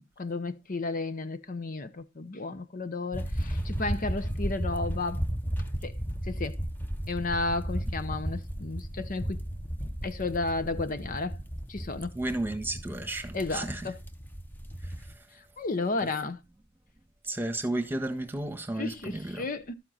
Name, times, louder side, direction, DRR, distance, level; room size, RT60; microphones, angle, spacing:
voice 1, 0.2-5.2 5.8-6.0 6.3-6.6 7.1-9.4 10.0-11.4 11.7-12.1 13.3-14.0 15.6-16.4 18.8-19.7, left 3 dB, 45° left, 0.8 m, -33 dB
sound 1, 3.1-15.1, equal, 10° left, 1.0 m, -34 dB
voice 2, 12.1-13.9 16.0-16.1 17.2-19.5, right 1 dB, 10° right, 1.4 m, -33 dB
12.5 x 7.4 x 4.1 m
head